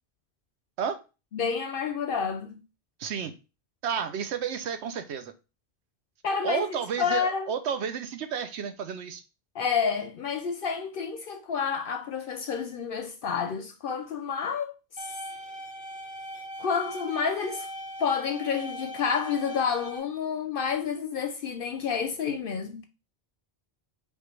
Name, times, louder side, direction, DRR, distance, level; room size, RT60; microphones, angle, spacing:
voice 1, 1.3-2.6 6.2-7.5 9.5-14.7 16.6-17.7 18.0-22.9, left 6 dB, 65° left, 0.7 m, -29 dB
voice 2, 3.0-3.3 3.8-5.3 6.4-9.2, right 7 dB, 85° right, 0.9 m, -31 dB
sound 1, 15.0-20.0, equal, 10° right, 0.8 m, -40 dB
5.3 x 2.5 x 3.1 m
omnidirectional pair, 1.1 m